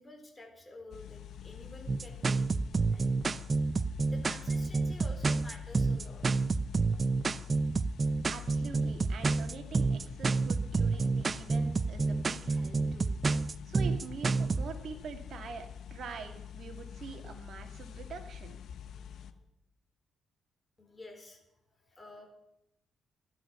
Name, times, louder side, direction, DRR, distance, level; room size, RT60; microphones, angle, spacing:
voice 1, 0.0-2.5 2.9-3.4 4.1-6.5 7.4-7.7 18.7-19.4 20.8-21.4 21.8-22.3, left 2 dB, 20° left, 3 dB, 3.6 m, -51 dB
sound 1, 0.9-19.3, left 8 dB, 70° left, 0.9 m, -46 dB
sound 2, 1.9-14.7, right 4 dB, 35° right, 0.5 m, -29 dB
voice 2, 8.3-13.1 13.7-18.6, right 5 dB, 60° right, 5 dB, 2.2 m, -45 dB
14.0 x 11.5 x 5.8 m, 0.82 s
cardioid pair, 90°, 0 cm